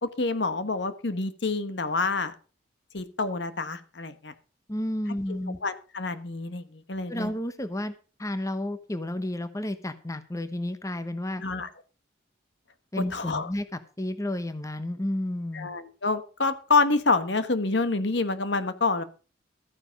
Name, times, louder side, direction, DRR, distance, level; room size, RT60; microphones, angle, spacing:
voice 1, 0.0-2.3 2.9-4.3 5.3-7.3 11.4-11.7 13.1-13.5 15.5-19.0, left 3 dB, 65° left, 11 dB, 1.2 m, -27 dB
voice 2, 4.7-5.6 7.1-7.9 8.2-11.4 12.9-15.7, left 1 dB, 15° left, 11 dB, 0.9 m, -31 dB
13.5 x 9.8 x 5.1 m, 0.37 s
head